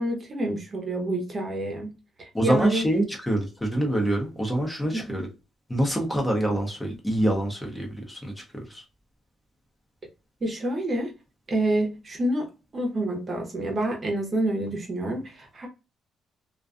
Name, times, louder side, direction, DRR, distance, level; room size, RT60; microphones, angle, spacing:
voice 1, 0.0-1.9 2.2-2.8 4.9-5.2 10.4-11.1 11.5-12.5 12.7-15.7, right 1 dB, 30° right, 0.7 m, -28 dB
voice 2, 2.3-5.3 5.7-8.3 8.7-8.8, right 1 dB, 10° left, 0.7 m, -25 dB
2.4 x 2.3 x 2.4 m
cardioid pair, 120°, 0 cm